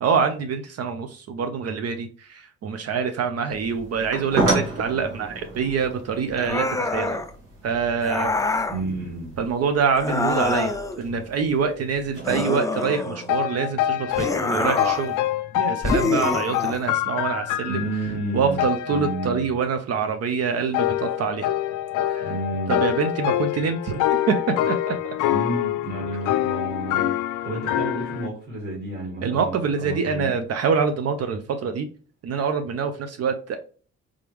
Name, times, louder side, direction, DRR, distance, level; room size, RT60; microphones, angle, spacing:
voice 1, 0.0-7.2 7.6-8.4 9.4-15.1 15.5-17.8 18.3-21.5 22.0-22.3 22.7-25.1 29.2-31.9 32.2-33.6, right 6 dB, 55° right, 7 dB, 0.5 m, -25 dB
sound 1, 3.5-12.4, right 2 dB, 90° right, 1.9 m, -33 dB
sound 2, 6.4-7.3 8.0-8.8 9.9-11.0 12.2-13.4 14.1-15.1 15.8-16.8, left 3 dB, 10° left, 0.4 m, -25 dB
voice 2, 8.7-9.4 17.7-19.5 22.2-22.9 25.3-27.1 27.4-30.3, right 2 dB, 35° right, -6 dB, 2.1 m, -31 dB
sound 3, 13.3-14.5 14.8-18.2 18.6-19.7 20.7-28.3, left 13 dB, 90° left, 0.4 m, -26 dB
3.6 x 3.4 x 3.0 m, 0.40 s
cardioid pair, 90°, 30 cm